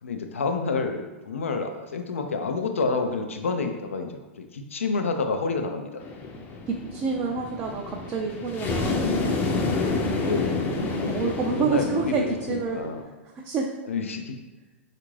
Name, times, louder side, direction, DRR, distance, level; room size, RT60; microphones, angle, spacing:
voice 1, 0.0-6.0 10.2-13.1 13.9-14.4, left 4 dB, 90° left, 5 dB, 0.3 m, -29 dB
sound 1, 6.0-13.0, left 3 dB, 30° left, 0.5 m, -29 dB
voice 2, 6.7-9.4 10.8-12.8 13.4-13.7, right 5 dB, 30° right, 0 dB, 0.4 m, -28 dB
3.6 x 2.4 x 3.1 m, 1.2 s
hypercardioid pair, 115°, 7 cm